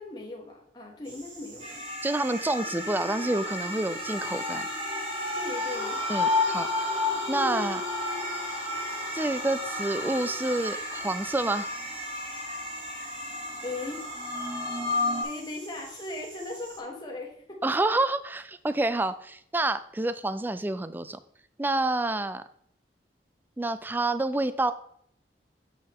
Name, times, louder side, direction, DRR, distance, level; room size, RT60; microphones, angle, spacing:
voice 1, 0.0-1.8 5.3-6.0 13.6-14.0 15.2-17.7, left 2 dB, 25° left, -1 dB, 1.4 m, -38 dB
sound 1, 1.0-16.8, right 3 dB, 80° right, 2.0 m, -47 dB
sound 2, 1.6-15.2, left 2 dB, 30° right, 1.3 m, -32 dB
voice 2, 2.0-4.7 6.1-7.8 9.1-11.7 17.6-21.2 21.6-22.4 23.6-24.7, right 2 dB, 10° right, 13 dB, 0.3 m, -28 dB
sound 3, 5.7-14.5, left 3 dB, 60° left, 0.9 m, -43 dB
7.5 x 5.5 x 3.5 m, 0.68 s
head